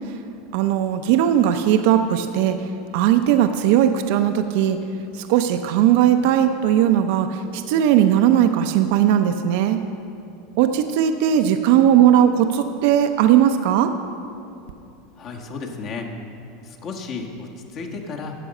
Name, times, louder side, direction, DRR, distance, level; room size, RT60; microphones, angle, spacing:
voice 1, 0.5-2.6 2.9-4.8 5.2-9.8 10.6-13.9, right 10 dB, 65° right, 8 dB, 0.5 m, -18 dB
voice 2, 15.2-16.1 16.6-18.3, left 4 dB, 45° left, 2 dB, 1.4 m, -33 dB
9.9 x 6.9 x 6.5 m, 2.7 s
hypercardioid pair, 105°, 0 cm